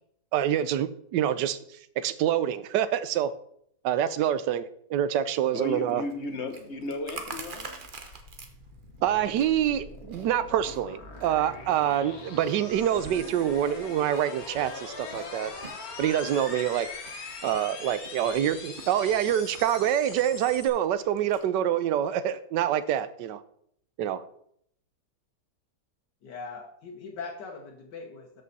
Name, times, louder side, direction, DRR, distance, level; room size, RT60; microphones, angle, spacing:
voice 1, 0.3-1.6 2.0-3.3 3.8-4.6 4.9-6.0 9.0-15.5 16.0-16.9 17.4-23.4 24.0-24.2, right 10 dB, 85° right, 14 dB, 1.3 m, -26 dB
voice 2, 5.5-7.8, left 2 dB, 45° left, 6 dB, 1.3 m, -35 dB
Chewing mastication, 5.9-21.4, right 4 dB, 40° right, 0.9 m, -48 dB
sound 1, 7.1-20.7, left 4 dB, 60° left, 1.8 m, -42 dB
voice 3, 26.2-28.4, left 4 dB, 85° left, 0 dB, 1.8 m, -41 dB
13.0 x 5.5 x 4.1 m, 0.68 s
omnidirectional pair, 1.8 m